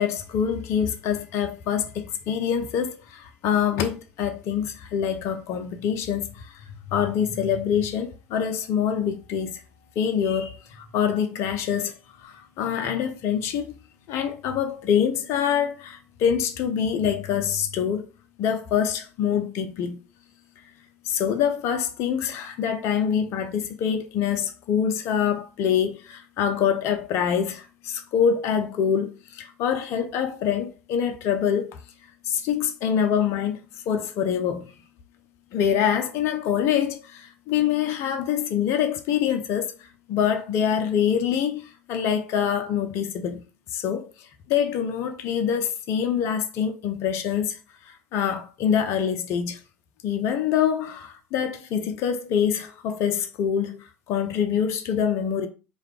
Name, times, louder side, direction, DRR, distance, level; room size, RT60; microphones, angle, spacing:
voice 1, 0.0-9.6 10.0-12.0 12.2-13.7 14.1-18.1 18.4-20.0 21.0-31.8 32.2-33.6 33.9-34.7 35.5-43.4 43.7-47.6 47.9-49.6 50.0-55.5, left 8 dB, 45° left, 0.6 m, -25 dB
4.8 x 2.3 x 3.2 m
figure-of-eight pair, 70°, 7 cm